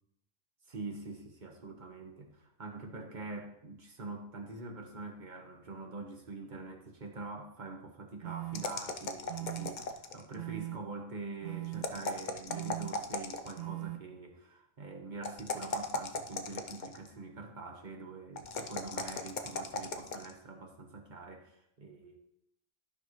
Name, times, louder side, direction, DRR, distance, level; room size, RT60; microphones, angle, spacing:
voice 1, 0.7-22.2, right 3 dB, 35° right, 3 dB, 1.3 m, -45 dB
sound 1, 8.2-8.6 9.3-9.7 10.4-10.8 11.4-11.8 12.5-12.9 13.6-14.0, right 22 dB, 75° right, 0.9 m, -39 dB
sound 2, 8.5-10.3 11.7-13.6 15.2-17.1 18.4-20.3, left 3 dB, 45° left, 0.6 m, -37 dB
12.0 x 6.0 x 3.1 m, 0.76 s
omnidirectional pair, 1.5 m